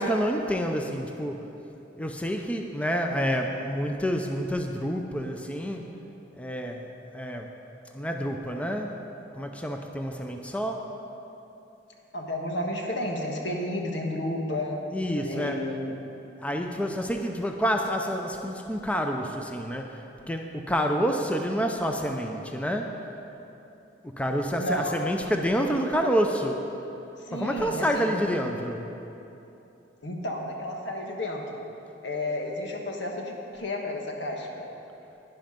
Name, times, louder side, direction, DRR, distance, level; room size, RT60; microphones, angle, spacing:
voice 1, 0.0-1.4 2.0-5.9 6.4-6.9 7.1-7.5 7.9-9.0 9.4-10.9 14.9-15.6 16.4-20.0 20.3-22.9 24.2-26.6 27.3-28.9, equal, 5° left, 3 dB, 0.5 m, -28 dB
voice 2, 12.1-14.8 15.2-16.0 24.6-25.0 27.3-28.1 30.0-31.6 32.0-34.7, left 1 dB, 85° left, 1 dB, 1.5 m, -32 dB
11.5 x 10.5 x 5.2 m, 2.9 s
head